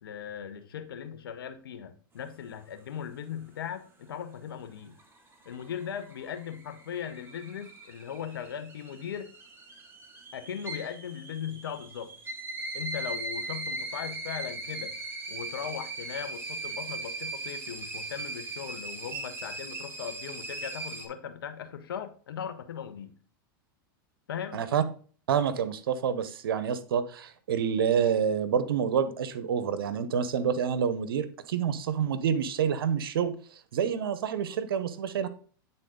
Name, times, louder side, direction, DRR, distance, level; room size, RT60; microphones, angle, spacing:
voice 1, 0.0-4.9 5.4-9.3 10.3-12.1 12.7-14.9 15.3-23.2 24.3-24.6, left 8 dB, 85° left, 9 dB, 1.1 m, -38 dB
sound 1, 4.8-21.1, right 2 dB, 20° right, 1.8 m, -39 dB
voice 2, 24.5-24.8 25.3-33.3 33.7-35.3, right 7 dB, 80° right, 13 dB, 0.8 m, -28 dB
9.0 x 4.0 x 3.8 m, 0.42 s
hypercardioid pair, 110°, 12 cm